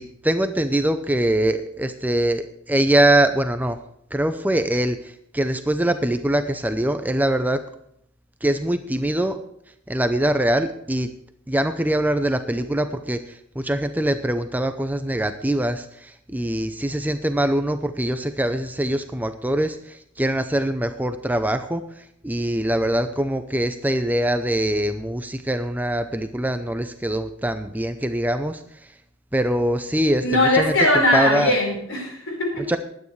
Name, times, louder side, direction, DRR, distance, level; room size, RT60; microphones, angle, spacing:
voice 1, 0.0-3.8 4.1-7.6 8.4-9.4 9.9-11.1 11.5-21.8 22.2-28.6 29.3-30.7 31.1-31.5 32.7-32.8, right 1 dB, 10° right, 8 dB, 0.5 m, -23 dB
voice 2, 30.2-32.7, left 1 dB, 65° left, 1 dB, 4.7 m, -20 dB
20.5 x 9.5 x 3.2 m, 0.74 s
head